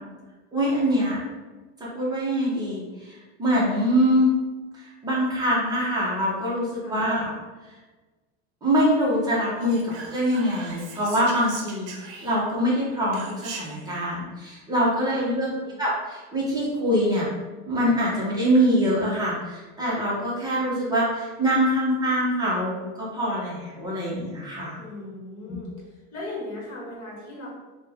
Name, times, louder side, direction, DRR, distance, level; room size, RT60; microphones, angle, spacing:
voice 1, 0.5-1.2 1.8-4.3 4.7-7.3 8.6-15.5 15.8-17.3 17.7-24.7, equal, 10° right, -6 dB, 0.7 m, -24 dB
Whispering, 9.6-12.6 13.1-13.9, right 5 dB, 60° right, 0.7 m, -40 dB
voice 2, 14.9-15.8 24.8-27.5, left 1 dB, 40° left, -4 dB, 1.2 m, -38 dB
3.2 x 2.3 x 3.3 m, 1.3 s
supercardioid pair, 150°, 37 cm